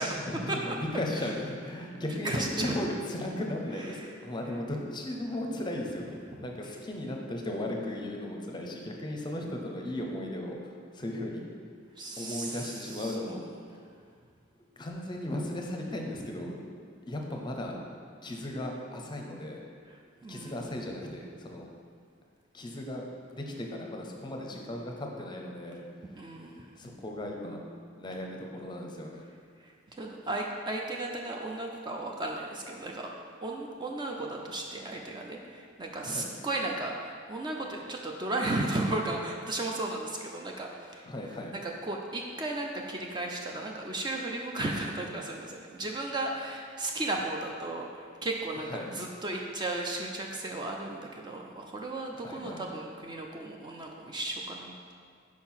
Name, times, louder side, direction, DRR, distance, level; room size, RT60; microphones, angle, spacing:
voice 1, 0.3-11.4 12.2-13.4 14.8-16.6 17.1-17.8 18.2-19.6 20.2-21.7 22.5-23.0 23.3-25.8 26.1-26.5 26.8-27.6 28.0-29.3 36.0-36.3 41.0-41.5 48.7-48.9 52.1-52.6, left 1 dB, 25° left, 1 dB, 0.6 m, -36 dB
voice 2, 2.2-2.7 3.9-4.1 6.3-6.5 12.0-13.4 16.2-16.4 19.9-20.7 26.2-26.7 29.6-33.1 33.4-41.1 41.6-54.9, right 2 dB, 25° right, 0 dB, 0.4 m, -35 dB
4.7 x 4.4 x 5.6 m, 2.1 s
head